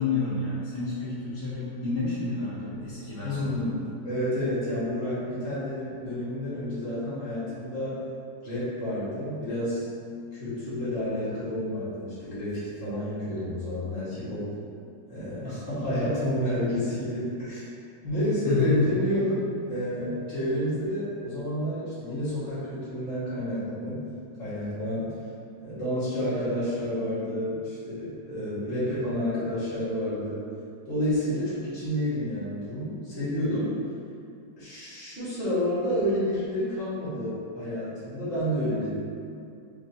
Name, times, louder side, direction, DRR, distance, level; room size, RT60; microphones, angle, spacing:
voice 1, 0.0-3.8 18.4-19.0, left 4 dB, 70° left, -12 dB, 1.5 m, -29 dB
voice 2, 3.2-3.8 4.0-8.0 8.4-9.8 10.3-14.5 15.1-17.7 18.0-19.4 19.7-24.0 24.4-25.1 25.6-30.4 30.9-33.7 34.6-38.9, equal, 35° left, -12 dB, 1.7 m, -29 dB
5.5 x 2.5 x 2.6 m, 2.5 s
omnidirectional pair, 1.9 m